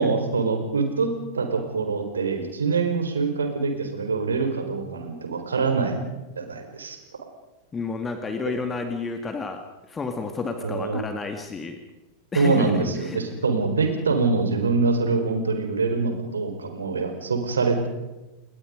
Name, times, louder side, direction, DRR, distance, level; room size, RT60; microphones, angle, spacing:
voice 1, 0.0-6.1 6.4-7.0 10.6-11.0 12.3-17.9, right 4 dB, 70° right, 6 dB, 4.5 m, -24 dB
voice 2, 7.7-11.8 12.3-13.2, left 4 dB, 15° left, 6 dB, 2.2 m, -31 dB
28.5 x 21.5 x 5.2 m, 1.0 s
figure-of-eight pair, 90°, 0 cm